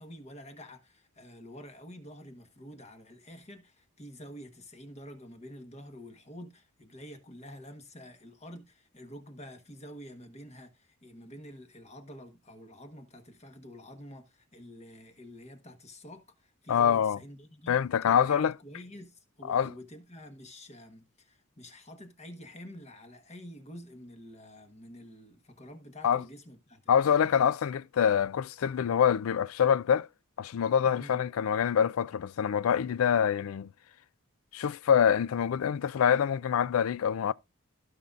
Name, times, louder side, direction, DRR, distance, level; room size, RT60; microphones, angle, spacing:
voice 1, 0.0-27.3 30.8-31.2, equal, 30° left, 1.2 m, -48 dB
voice 2, 16.7-17.2 17.7-18.5 19.5-19.7 26.0-26.2 26.9-30.1 30.4-33.7 34.5-37.3, left 8 dB, 75° left, 0.3 m, -25 dB
16.0 x 5.4 x 2.4 m
head